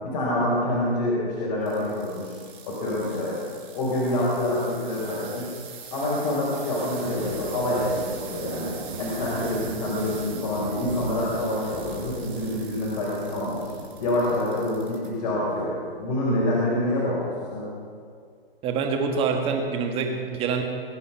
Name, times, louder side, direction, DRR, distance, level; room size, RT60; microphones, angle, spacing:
voice 1, 0.0-2.3 2.7-3.4 3.7-5.5 5.9-13.7 14.0-15.7 16.0-17.7, left 1 dB, 35° left, -6 dB, 4.2 m, -26 dB
sound 1, 1.6-15.1 15.6-16.1 16.7-16.8, right 6 dB, 55° right, 4.5 m, -43 dB
sound 2, 7.0-14.3, right 2 dB, 85° right, 4.9 m, -39 dB
voice 2, 18.6-20.6, right 5 dB, 20° right, 4 dB, 1.5 m, -25 dB
21.5 x 9.6 x 5.7 m, 2.1 s
hypercardioid pair, 150°, 30 cm